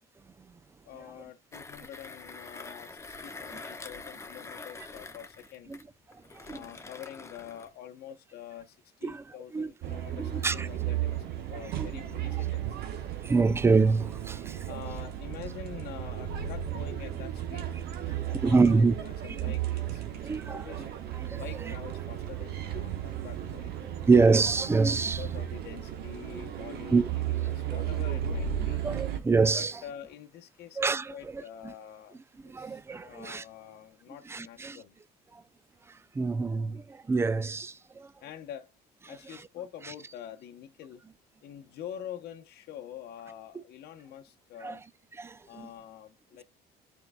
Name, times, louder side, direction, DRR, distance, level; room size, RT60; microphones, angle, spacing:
voice 1, 0.9-5.8 6.5-12.8 14.6-17.7 18.0-20.0 20.3-20.9 21.3-23.7 24.9-28.9 29.5-32.2 32.4-35.0 38.2-38.7 39.1-41.0 41.4-44.8 45.5-46.4, left 10 dB, 70° left, 0.8 m, -46 dB
Mechanisms, 1.5-7.7, left 3 dB, 15° left, 0.8 m, -45 dB
sound 1, 9.8-29.2, right 10 dB, 70° right, 1.1 m, -34 dB
voice 2, 10.2-10.7 11.8-11.9 13.2-14.6 18.4-18.9 20.2-20.6 21.2-21.4 24.1-25.2 26.9-27.1 28.8-29.7 30.8-31.4 32.5-33.4 34.3-34.8 36.2-38.1 44.6-44.8 45.2-45.7, right 4 dB, 15° right, 0.4 m, -25 dB
13.5 x 4.5 x 2.2 m
cardioid pair, 110°, 17 cm